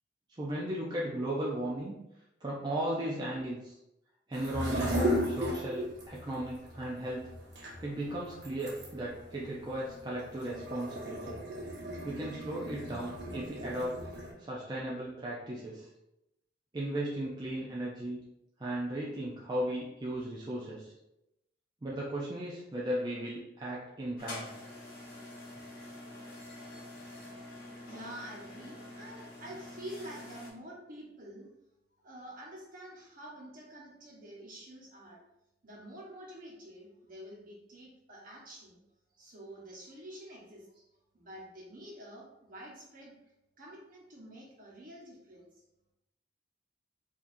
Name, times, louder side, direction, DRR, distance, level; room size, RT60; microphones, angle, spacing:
voice 1, 0.4-1.9 2.4-3.8 4.3-7.3 7.8-11.4 12.0-14.0 14.4-15.9 16.7-18.2 18.6-20.9 21.8-24.5, right 1 dB, 25° right, -5 dB, 0.5 m, -36 dB
sound 1, 4.3-14.3, equal, 70° right, 1.0 m, -36 dB
sound 2, 24.2-30.5, left 1 dB, 55° left, 1.0 m, -46 dB
voice 2, 27.9-31.5 32.0-35.2 35.6-38.8 39.2-40.7 41.1-43.2 43.6-45.5, right 1 dB, 50° right, -3 dB, 1.2 m, -48 dB
4.6 x 2.8 x 2.6 m, 0.87 s
head